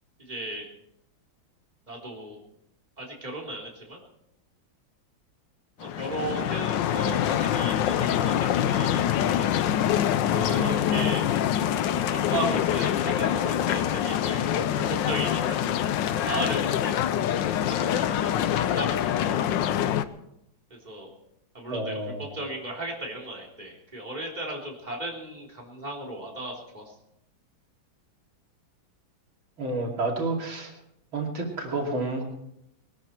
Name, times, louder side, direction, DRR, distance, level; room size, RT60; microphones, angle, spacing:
voice 1, 0.2-0.7 1.9-2.4 3.0-4.0 5.8-10.0 10.3-11.3 11.7-15.8 16.2-16.9 17.3-19.5 20.7-21.1 21.5-21.9 22.2-27.0, right 1 dB, 20° right, -2 dB, 3.8 m, -36 dB
sound 1, 5.8-20.0, left 10 dB, 70° left, 1.3 m, -25 dB
voice 2, 21.7-22.2 29.6-30.7 31.1-32.2, right 2 dB, 80° right, 0 dB, 3.5 m, -29 dB
20.5 x 13.0 x 4.5 m, 0.78 s
omnidirectional pair, 2.2 m